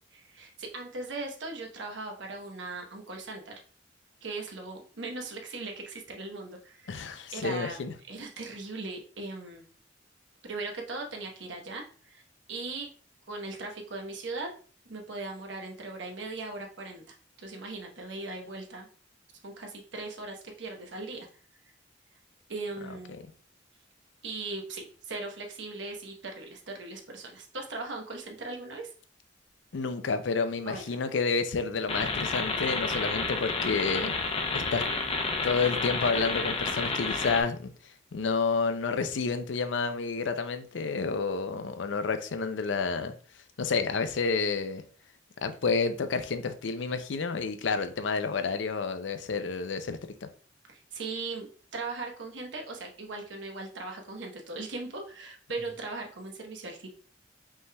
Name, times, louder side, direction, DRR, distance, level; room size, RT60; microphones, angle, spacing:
voice 1, 0.1-3.5 4.2-7.0 7.3-7.8 8.1-9.6 10.4-12.2 12.5-12.9 13.3-14.5 14.9-18.9 19.4-21.3 22.5-23.2 24.2-28.9 30.7-31.0 50.7-56.9, right 3 dB, 75° right, 1.0 m, -39 dB
voice 2, 6.9-7.9 29.7-34.1 34.5-34.9 35.4-37.7 38.1-43.1 43.6-44.8 45.4-50.3, left 4 dB, 80° left, 0.5 m, -30 dB
sound 1, 31.9-37.4, left 3 dB, 30° left, 0.6 m, -30 dB
5.3 x 3.3 x 2.3 m
head